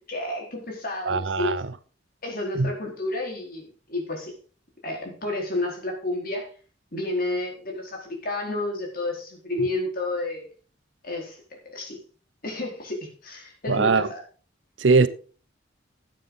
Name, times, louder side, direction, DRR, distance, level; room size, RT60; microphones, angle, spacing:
voice 1, 0.1-1.6 2.2-4.3 4.8-6.5 6.9-10.5 11.0-11.4 11.7-12.0 12.4-14.2, left 2 dB, 50° left, 4.4 m, -30 dB
voice 2, 1.1-1.6 2.5-2.7 13.7-14.1 14.8-15.1, right 4 dB, 75° right, 0.8 m, -20 dB
13.0 x 9.3 x 4.0 m
head